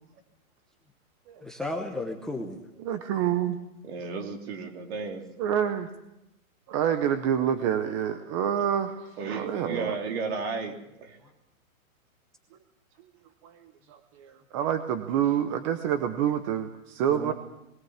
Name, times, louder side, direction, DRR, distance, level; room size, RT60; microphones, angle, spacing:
voice 1, 1.4-2.6 3.5-3.6 17.1-17.3, left 2 dB, ahead, 3 dB, 0.9 m, -34 dB
voice 2, 2.8-3.6 5.4-5.9 6.7-9.9 13.4-17.3, right 9 dB, 25° right, 9 dB, 0.7 m, -27 dB
voice 3, 3.8-5.3 9.2-11.2, right 4 dB, 45° right, 3 dB, 3.4 m, -34 dB
20.5 x 18.0 x 7.3 m, 0.88 s
hypercardioid pair, 155°, 42 cm